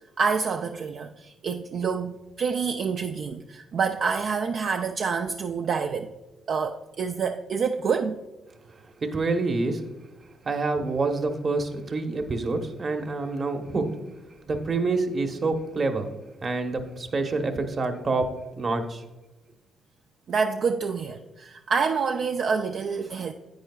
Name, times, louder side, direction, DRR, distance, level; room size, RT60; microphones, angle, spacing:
voice 1, 0.0-6.1 6.5-8.2 20.3-23.3, right 5 dB, 60° right, 5 dB, 0.4 m, -27 dB
voice 2, 9.0-9.8 10.4-13.9 14.5-16.1 16.4-18.3 18.6-19.0, right 3 dB, 40° right, 6 dB, 1.0 m, -27 dB
10.5 x 8.7 x 2.3 m, 1.1 s
cardioid pair, 90°, 0 cm